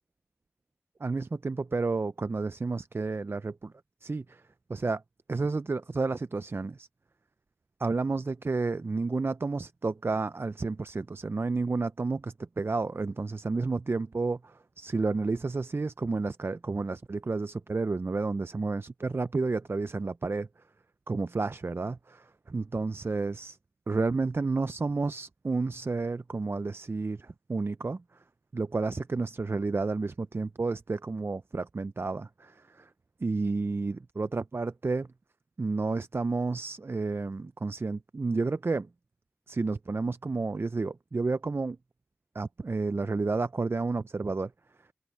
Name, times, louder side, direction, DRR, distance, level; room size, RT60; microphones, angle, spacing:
voice 1, 1.0-3.7 4.0-4.4 4.7-5.0 5.3-6.9 7.8-20.5 21.1-23.6 23.9-28.0 28.5-32.9 33.2-35.1 35.6-38.9 39.5-41.8 42.3-44.5, right 3 dB, 50° right, 0.4 m, -31 dB
wide cardioid pair, 45°, 5 cm